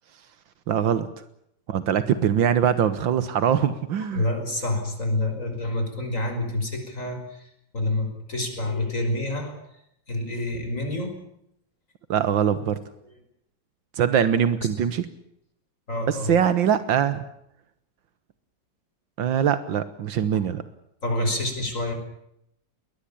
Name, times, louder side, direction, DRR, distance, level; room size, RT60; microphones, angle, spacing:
voice 1, 0.7-1.1 1.7-4.3 12.1-12.8 13.9-15.1 16.1-17.2 19.2-20.6, right 9 dB, 80° right, 13 dB, 1.9 m, -22 dB
voice 2, 4.1-7.4 7.7-9.6 10.1-11.1 15.9-16.4 21.0-21.9, left 1 dB, 40° left, 5 dB, 5.8 m, -27 dB
22.0 x 19.5 x 8.5 m, 0.76 s
omnidirectional pair, 2.0 m